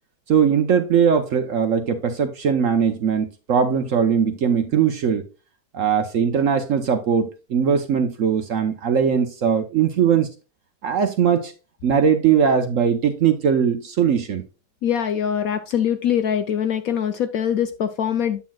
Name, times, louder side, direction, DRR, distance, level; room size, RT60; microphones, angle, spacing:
voice 1, 0.3-5.2 5.7-10.3 10.8-11.5 11.8-14.4, right 7 dB, 60° right, 0.9 m, -20 dB
voice 2, 14.8-18.4, left 9 dB, 70° left, 0.9 m, -23 dB
8.5 x 7.5 x 2.3 m
omnidirectional pair, 1.9 m